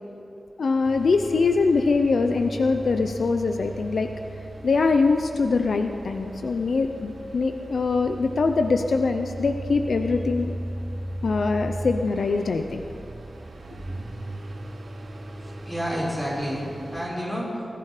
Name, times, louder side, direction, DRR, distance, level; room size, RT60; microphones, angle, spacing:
voice 1, 0.6-4.1 4.6-10.5 11.2-12.8, left 4 dB, 70° left, 6 dB, 0.7 m, -23 dB
sound 1, 0.8-17.1, right 1 dB, 65° right, 2.7 m, -37 dB
voice 2, 15.4-17.7, equal, 10° left, -6 dB, 5.0 m, -30 dB
20.0 x 14.0 x 5.0 m, 2.6 s
wide cardioid pair, 125°, 0 cm